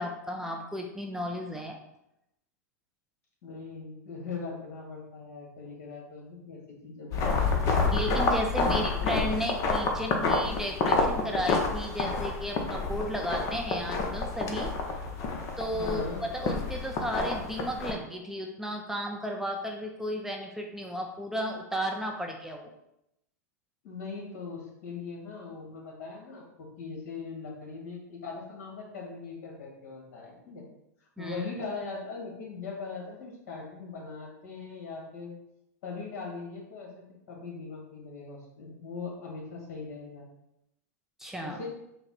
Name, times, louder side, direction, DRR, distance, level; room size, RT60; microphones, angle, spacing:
voice 1, 0.0-1.8 7.9-14.7 15.6-16.0 16.3-22.7 31.2-31.4 41.2-41.6, equal, 5° right, 1 dB, 0.3 m, -34 dB
voice 2, 3.4-7.5 8.7-9.2 15.7-16.2 23.8-30.6 31.2-35.4 35.8-36.9 37.3-40.2 41.4-41.7, left 4 dB, 60° left, -1 dB, 1.4 m, -40 dB
sound 1, 7.1-17.9, left 3 dB, 35° left, 0.7 m, -29 dB
4.1 x 2.1 x 4.0 m, 0.84 s
hypercardioid pair, 110°, 9 cm